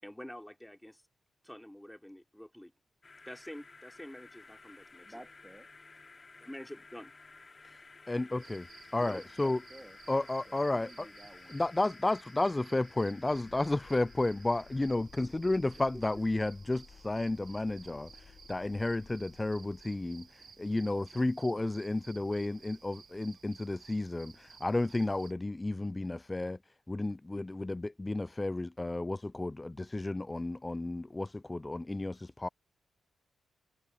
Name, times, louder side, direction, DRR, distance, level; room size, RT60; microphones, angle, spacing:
voice 1, 0.0-1.0 1.4-2.7 3.3-5.2 6.4-7.1 9.0-9.2, left 1 dB, 5° left, 4.4 m, -47 dB
sound 1, 3.0-15.0, left 3 dB, 40° left, 5.3 m, -55 dB
voice 2, 5.0-5.7 9.4-11.6 15.9-16.1, right 1 dB, 10° right, 0.8 m, -53 dB
voice 3, 8.1-8.7 8.9-9.6 10.1-11.1 11.5-26.6 26.9-32.5, left 2 dB, 20° left, 0.4 m, -32 dB
sound 2, 8.4-25.3, right 6 dB, 55° right, 1.1 m, -57 dB
sound 3, 13.2-20.4, left 6 dB, 60° left, 1.3 m, -57 dB
supercardioid pair, 45°, 0 cm